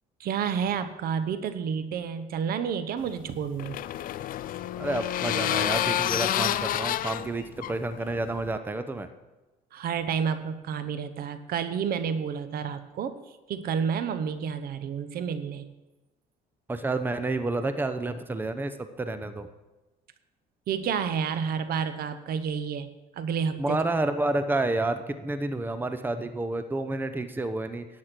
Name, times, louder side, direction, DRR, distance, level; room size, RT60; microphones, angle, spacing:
voice 1, 0.2-3.8 9.7-13.2 13.5-15.7 20.7-23.8, right 7 dB, 60° right, 11 dB, 0.9 m, -30 dB
sound 1, 3.0-8.6, left 12 dB, 55° left, 0.5 m, -29 dB
voice 2, 4.8-9.1 16.7-19.5 23.6-27.9, right 2 dB, 10° right, 10 dB, 0.8 m, -29 dB
11.0 x 8.5 x 6.0 m, 1.1 s
cardioid pair, 110°, 17 cm